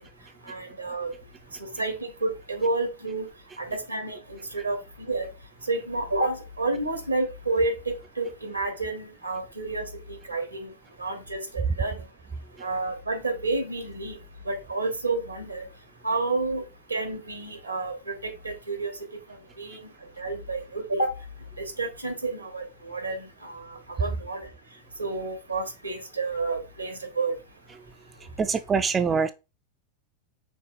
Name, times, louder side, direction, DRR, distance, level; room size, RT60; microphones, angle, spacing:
voice 1, 0.5-1.1 1.6-3.3 3.6-5.3 5.7-10.7 11.0-12.0 12.6-14.2 14.4-15.6 16.0-16.6 16.9-19.0 19.6-19.9 20.2-21.1 21.6-24.5 25.0-27.3, right 3 dB, 85° right, 1.2 m, -30 dB
voice 2, 28.4-29.3, right 5 dB, 20° right, 0.3 m, -24 dB
5.3 x 3.8 x 2.5 m
figure-of-eight pair, 90°, 0 cm